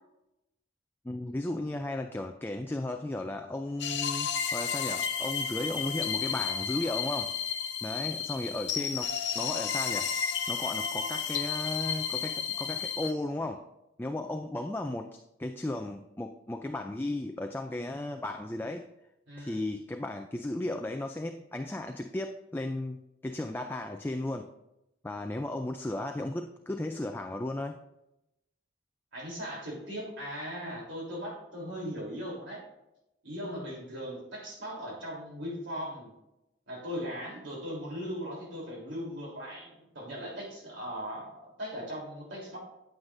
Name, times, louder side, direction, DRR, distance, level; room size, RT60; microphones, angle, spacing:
voice 1, 1.0-7.4 7.8-10.1 10.5-13.7 14.0-18.9 19.4-24.5 25.0-27.8, left 1 dB, 10° left, 5 dB, 0.3 m, -35 dB
sound 1, 3.8-13.1, left 7 dB, 70° left, 0.7 m, -32 dB
voice 2, 19.3-19.6 29.1-32.6 33.2-36.1 36.7-42.6, equal, 85° right, -3 dB, 3.3 m, -39 dB
9.4 x 8.1 x 2.6 m, 0.89 s
head